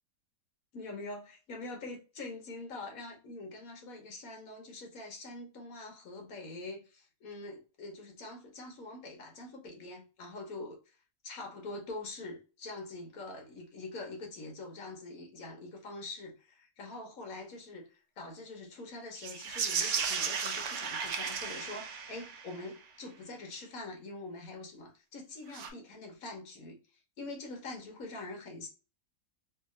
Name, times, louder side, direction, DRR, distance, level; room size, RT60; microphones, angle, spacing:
voice 1, 0.7-11.0 11.2-28.7, left 2 dB, 65° left, 1.4 m, -44 dB
sound 1, 19.2-22.7 25.5-25.7, right 6 dB, 70° right, 0.7 m, -35 dB
3.4 x 2.8 x 2.4 m
omnidirectional pair, 1.7 m